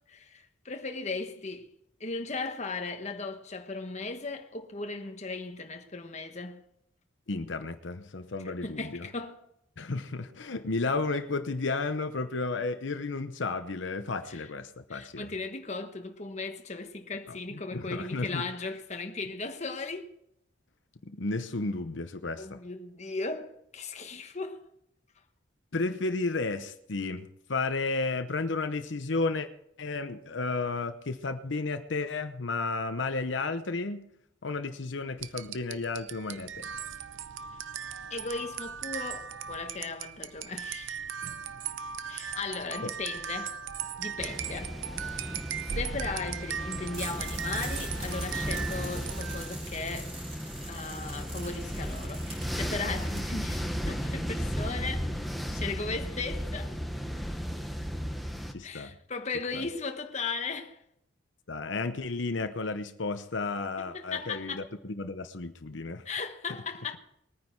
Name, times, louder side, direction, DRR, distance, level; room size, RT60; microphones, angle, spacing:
voice 1, 0.1-1.7 2.0-6.6 8.6-9.4 14.3-14.5 14.9-20.1 22.4-24.7 38.1-41.0 42.0-43.6 44.0-44.8 45.1-50.1 50.7-55.1 55.5-56.7 58.6-60.8 63.8-64.6 66.0-67.0, left 4 dB, 35° left, 1.2 m, -37 dB
voice 2, 7.3-9.1 9.8-15.3 17.3-18.4 21.0-22.6 25.7-29.5 29.8-34.0 34.4-36.7 42.8-42.9 58.5-58.9 59.5-59.6 61.5-66.0, left 3 dB, 75° left, 0.9 m, -33 dB
sound 1, 35.2-49.6, right 7 dB, 90° right, 0.7 m, -38 dB
sound 2, 44.2-58.5, equal, ahead, 1.1 m, -35 dB
sound 3, 46.9-53.2, right 2 dB, 35° right, 5.5 m, -45 dB
21.0 x 9.7 x 4.6 m
head